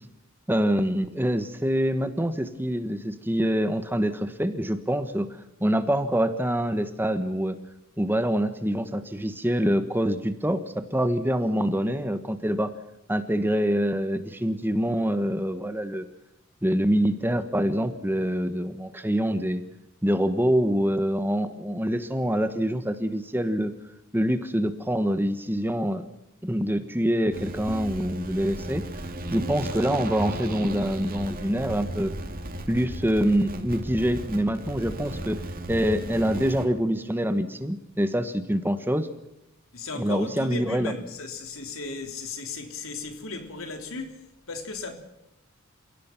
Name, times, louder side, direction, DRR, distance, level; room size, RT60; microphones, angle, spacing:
voice 1, 0.5-5.3 5.6-7.6 8.0-12.7 13.1-16.1 16.6-19.6 20.0-23.7 24.1-26.1 26.4-28.8 29.3-32.1 32.7-35.4 35.7-39.1 39.9-40.9, equal, 10° right, 1.3 m, -25 dB
sound 1, 27.3-36.7, right 1 dB, 45° right, 2.5 m, -35 dB
voice 2, 39.7-44.9, left 3 dB, 75° left, 3.6 m, -36 dB
29.0 x 17.0 x 6.0 m
head